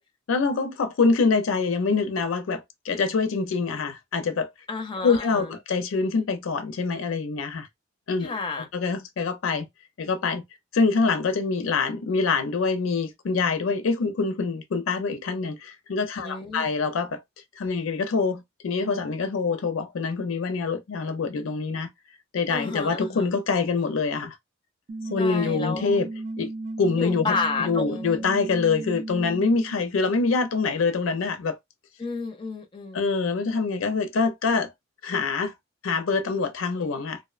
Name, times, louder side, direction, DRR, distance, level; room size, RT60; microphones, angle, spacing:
voice 1, 0.3-4.5 5.0-7.7 8.1-8.4 8.7-9.7 10.0-10.4 10.7-17.2 17.6-21.9 22.3-24.4 25.1-26.1 26.4-26.5 26.8-27.4 27.7-31.6 32.9-34.7 35.0-35.5 35.8-37.2, left 4 dB, 80° left, 0.4 m, -25 dB
voice 2, 4.7-5.5 8.2-8.7 16.2-16.7 22.5-23.3 25.2-26.0 27.0-28.2 32.0-33.1, left 4 dB, 25° left, 0.4 m, -31 dB
sound 1, 24.9-29.8, right 2 dB, 40° right, 0.4 m, -35 dB
2.5 x 2.1 x 2.4 m
head